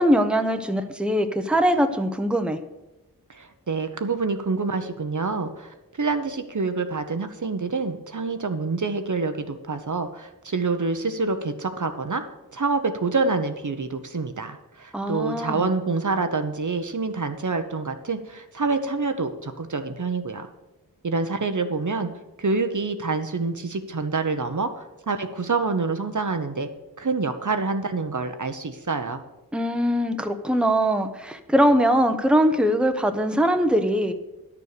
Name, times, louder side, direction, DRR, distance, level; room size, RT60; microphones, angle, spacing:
voice 1, 0.0-2.6 14.9-15.7 29.5-34.1, equal, 5° right, 7 dB, 0.9 m, -22 dB
voice 2, 3.3-12.2 12.5-20.5 21.0-22.1 22.4-26.7 27.0-29.2, right 4 dB, 55° right, 8 dB, 0.9 m, -27 dB
10.5 x 6.9 x 6.7 m, 1.0 s
wide cardioid pair, 50°, 36 cm